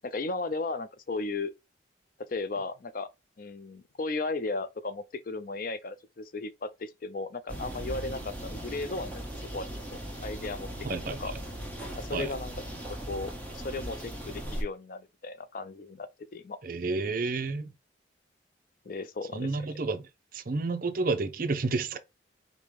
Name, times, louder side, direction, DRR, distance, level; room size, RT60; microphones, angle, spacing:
voice 1, 0.0-1.5 2.2-3.1 3.4-9.2 9.5-10.7 11.2-11.3 12.0-12.5 13.0-16.6 18.9-19.6, left 3 dB, 45° left, 0.4 m, -35 dB
sound 1, 7.5-14.6, equal, 10° left, 1.1 m, -38 dB
voice 2, 10.8-11.2 12.1-12.3 16.6-17.7 19.3-20.1 20.3-22.0, right 3 dB, 45° right, 0.6 m, -30 dB
5.2 x 2.2 x 4.6 m
head